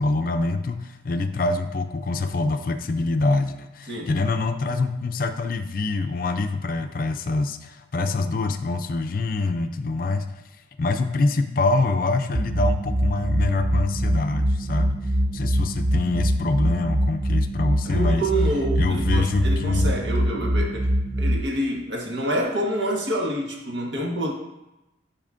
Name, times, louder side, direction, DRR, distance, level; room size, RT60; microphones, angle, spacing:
voice 1, 0.0-10.4 10.8-15.0 15.3-18.2 18.8-19.9, left 3 dB, 50° left, 8 dB, 0.4 m, -25 dB
sound 1, 12.3-21.4, right 1 dB, 20° right, 0.3 m, -23 dB
voice 2, 17.8-20.9 21.2-24.3, right 1 dB, 80° right, -1 dB, 1.4 m, -27 dB
10.5 x 5.0 x 2.6 m, 0.95 s
head